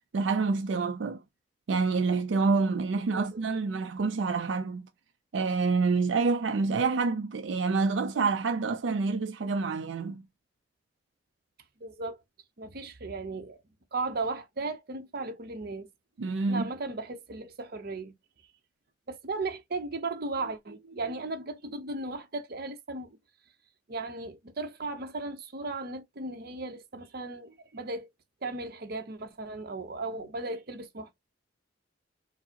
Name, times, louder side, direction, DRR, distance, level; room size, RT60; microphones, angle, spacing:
voice 1, 0.1-1.2 1.7-4.9 5.3-10.2 16.2-16.7, right 4 dB, 85° right, 0.4 m, -27 dB
voice 2, 3.1-3.5 11.8-12.2 12.6-13.6 13.9-15.9 16.5-18.1 19.1-23.2 23.9-28.1 28.4-31.2, right 3 dB, 55° right, 0.8 m, -36 dB
4.6 x 2.0 x 2.8 m
head